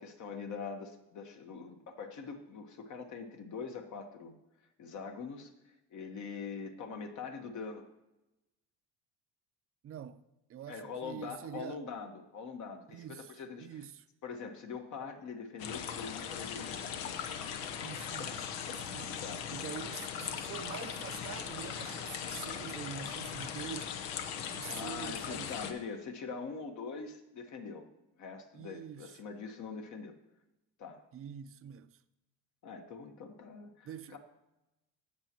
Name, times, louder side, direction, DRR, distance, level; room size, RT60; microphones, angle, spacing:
voice 1, 0.0-4.3 4.8-5.5 5.9-7.9 10.7-13.8 14.2-17.2 19.2-19.5 24.7-27.9 28.2-30.1 30.8-31.0 32.6-34.2, left 5 dB, 55° left, 1.5 m, -43 dB
voice 2, 9.8-10.2 10.5-11.8 12.9-13.3 13.6-14.0 17.8-19.2 19.5-25.7 28.5-29.2 31.1-32.0 33.8-34.2, right 9 dB, 40° right, 0.6 m, -46 dB
sound 1, 15.6-25.7, left 8 dB, 85° left, 1.0 m, -39 dB
16.5 x 6.2 x 3.0 m
cardioid pair, 115°, 35 cm